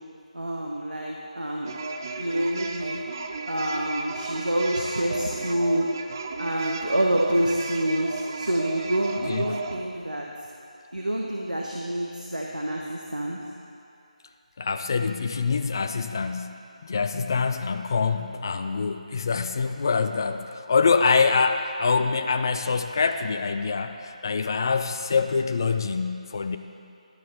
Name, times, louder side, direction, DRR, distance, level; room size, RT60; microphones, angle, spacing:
voice 1, 0.3-1.7 2.2-3.0 3.5-5.9 6.4-10.3 10.9-13.4, right 1 dB, 80° right, -1 dB, 1.1 m, -27 dB
sound 1, 1.7-9.8, right 3 dB, 25° right, 0.4 m, -35 dB
voice 2, 9.3-9.6 14.6-26.6, left 5 dB, 30° left, 8 dB, 0.4 m, -25 dB
12.0 x 11.5 x 3.4 m, 2.6 s
figure-of-eight pair, 160°, 4 cm